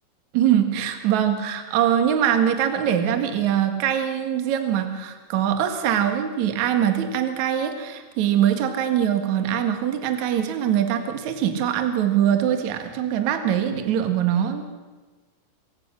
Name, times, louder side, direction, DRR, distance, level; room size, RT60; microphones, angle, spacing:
voice 1, 0.3-14.6, right 9 dB, 55° right, 6 dB, 2.4 m, -22 dB
25.5 x 16.0 x 6.4 m, 1.3 s
omnidirectional pair, 5.3 m